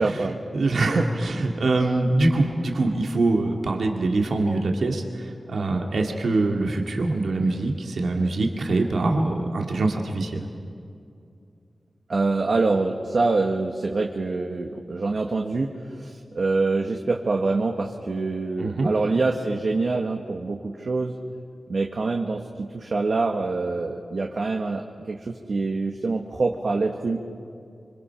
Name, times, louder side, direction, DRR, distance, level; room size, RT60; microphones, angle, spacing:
voice 1, 0.0-0.4 0.8-1.3 12.1-21.1 21.7-27.2, right 3 dB, 65° right, 1 dB, 1.5 m, -25 dB
voice 2, 0.5-10.5 18.6-18.9, right 2 dB, 85° right, 1 dB, 2.2 m, -24 dB
26.5 x 26.0 x 5.8 m, 2.5 s
wide cardioid pair, 110°, 0 cm